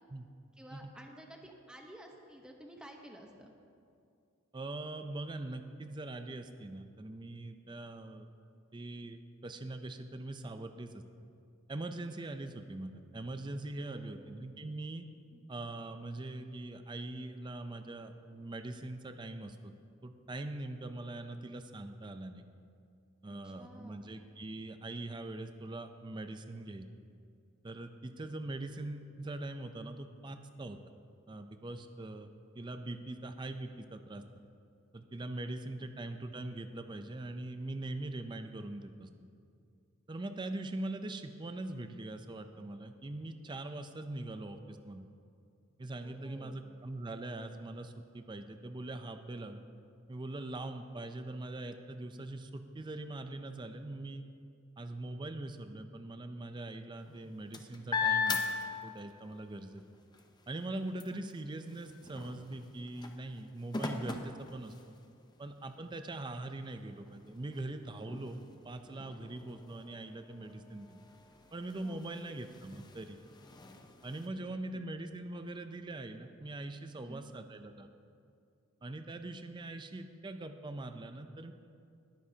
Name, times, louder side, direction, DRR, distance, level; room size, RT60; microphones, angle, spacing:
voice 1, 0.6-3.5 13.9-14.5 15.3-15.4 23.4-24.1 35.8-35.9 46.0-46.6 61.1-61.2 71.8-72.0 74.5-74.8 77.0-77.3, equal, 5° right, 1 dB, 0.9 m, -52 dB
voice 2, 4.5-8.3 8.7-11.0 11.7-15.1 15.5-19.7 20.0-22.4 23.2-26.9 27.6-30.8 31.3-32.3 32.5-34.2 34.9-39.1 40.1-45.1 45.8-49.6 50.1-54.2 54.8-58.4 58.8-59.8 60.5-64.9 65.4-68.4 68.6-71.0 71.5-73.2 74.0-77.9 78.8-81.5, right 2 dB, 20° right, 8 dB, 0.4 m, -42 dB
sound 1, 57.0-59.4 59.8-65.2 65.9-66.0 66.3-74.3, left 5 dB, 20° left, 0.6 m, -40 dB
19.5 x 9.4 x 2.8 m, 2.4 s
head